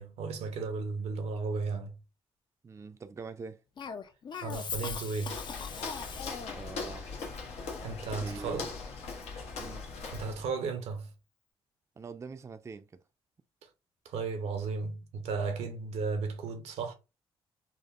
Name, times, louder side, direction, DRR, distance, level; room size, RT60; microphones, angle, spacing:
voice 1, 0.0-2.0 4.4-5.4 7.8-8.7 10.1-11.1 14.0-16.9, right 4 dB, 80° right, 0.6 m, -34 dB
voice 2, 2.6-3.6 6.5-7.1 8.1-8.6 9.6-9.8 12.0-12.9, right 5 dB, 25° right, 0.4 m, -44 dB
Cough, 3.8-6.7, left 6 dB, 45° left, 0.4 m, -39 dB
Walk footsteps, 5.2-10.5, left 4 dB, 80° left, 0.7 m, -40 dB
3.4 x 2.0 x 2.3 m
supercardioid pair, 65°, 11 cm